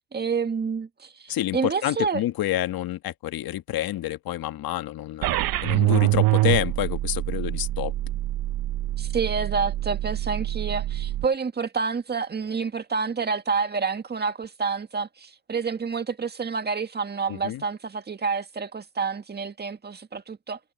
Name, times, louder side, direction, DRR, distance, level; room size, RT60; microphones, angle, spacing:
voice 1, 0.1-2.2 9.0-20.6, right 5 dB, 20° right, 1.8 m, -28 dB
voice 2, 1.3-5.3 5.6-7.9 17.3-17.6, left 13 dB, 50° left, 1.5 m, -28 dB
sound 1, 5.2-11.2, right 16 dB, 50° right, 1.1 m, -25 dB
supercardioid pair, 100°, 45 cm